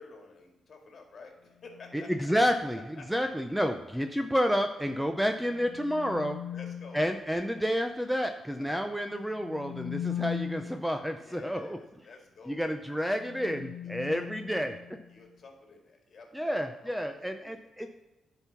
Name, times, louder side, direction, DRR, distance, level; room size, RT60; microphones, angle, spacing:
voice 1, 0.0-2.3 2.8-3.3 6.5-7.0 11.2-12.8 13.8-14.6 15.1-17.7, left 4 dB, 45° left, 2 dB, 2.1 m, -51 dB
sound 1, 1.6-2.1 5.2-7.1 9.2-10.9 12.9-15.2, left 9 dB, 70° left, 0.8 m, -39 dB
voice 2, 1.9-6.4 6.9-11.8 12.5-14.8 16.3-17.9, equal, ahead, 6 dB, 0.5 m, -30 dB
10.5 x 4.6 x 5.6 m, 1.0 s
cardioid pair, 115°, 0 cm